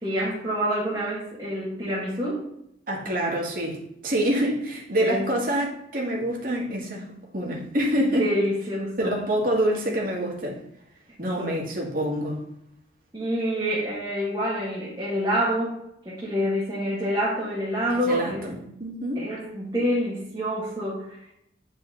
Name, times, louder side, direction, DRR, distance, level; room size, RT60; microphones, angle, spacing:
voice 1, 0.0-2.4 5.0-5.3 8.1-9.2 11.4-11.5 13.1-18.5 19.2-21.3, equal, 20° right, -8 dB, 1.9 m, -27 dB
voice 2, 2.9-7.1 7.3-8.3 9.0-10.6 11.2-12.4 17.9-19.2, right 1 dB, 45° right, -2 dB, 2.1 m, -26 dB
9.9 x 4.7 x 4.0 m, 0.77 s
head